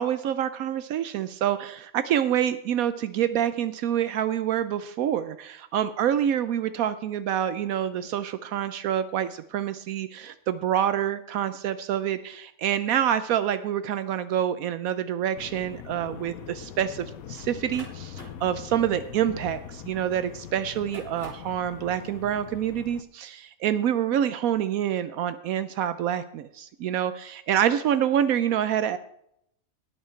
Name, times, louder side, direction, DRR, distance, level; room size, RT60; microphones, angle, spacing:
voice 1, 0.0-29.0, right 10 dB, 80° right, 12 dB, 1.1 m, -27 dB
sound 1, 15.3-23.0, left 9 dB, 80° left, 1.2 m, -42 dB
sound 2, 17.4-20.1 20.7-21.6, left 1 dB, 40° left, 3.8 m, -47 dB
19.0 x 6.6 x 4.4 m, 0.73 s
omnidirectional pair, 1.5 m